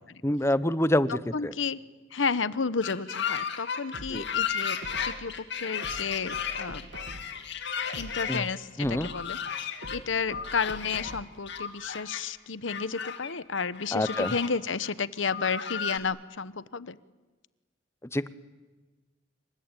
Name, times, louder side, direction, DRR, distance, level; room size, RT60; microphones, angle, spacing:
voice 1, 0.2-1.5 4.1-4.2 8.3-8.4 8.8-9.1 13.9-14.3 18.1-18.3, left 1 dB, 15° left, 15 dB, 0.9 m, -26 dB
voice 2, 1.1-1.8 2.1-4.8 5.0-6.8 8.0-17.0, left 5 dB, 80° left, 16 dB, 1.0 m, -32 dB
sound 1, 2.8-8.4 9.0-10.0 10.3-11.2 11.5-12.2 12.7-13.3 13.7-14.5 14.8-14.9 15.2-16.0, left 7 dB, 65° left, 2.3 m, -34 dB
sound 2, 3.9-5.3 5.8-7.4 7.8-9.3 9.8-11.4 11.8-11.9, right 1 dB, 70° right, 2.1 m, -45 dB
27.5 x 23.5 x 9.1 m, 1.2 s
head